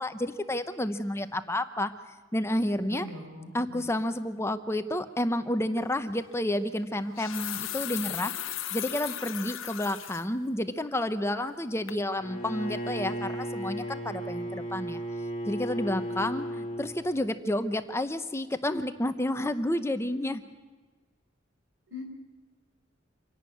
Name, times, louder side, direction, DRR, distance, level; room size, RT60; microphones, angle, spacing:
voice 1, 0.0-1.9 2.3-3.1 3.5-8.3 8.7-15.0 15.5-20.4, left 1 dB, 15° left, 10 dB, 0.8 m, -30 dB
voice 2, 2.8-3.8 21.9-22.0, left 1 dB, 80° right, 3 dB, 5.0 m, -41 dB
sound 1, 5.8-5.9 6.9-10.3 10.7-10.8 11.3-11.6 11.9-12.0, left 12 dB, 80° left, 0.9 m, -37 dB
Bowed string instrument, 12.2-17.0, equal, 35° left, 2.7 m, -35 dB
26.5 x 11.0 x 9.3 m, 1.3 s
head